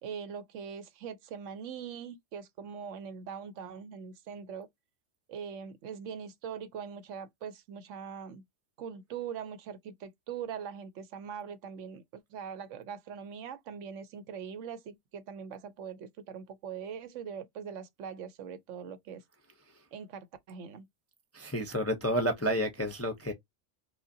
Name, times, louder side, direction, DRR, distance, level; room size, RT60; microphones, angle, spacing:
voice 1, 0.0-4.7 5.3-8.4 8.8-19.2 19.9-20.9, right 7 dB, 75° right, 1.0 m, -42 dB
voice 2, 21.3-23.3, equal, 20° left, 0.4 m, -30 dB
5.0 x 2.2 x 2.6 m
omnidirectional pair, 1.3 m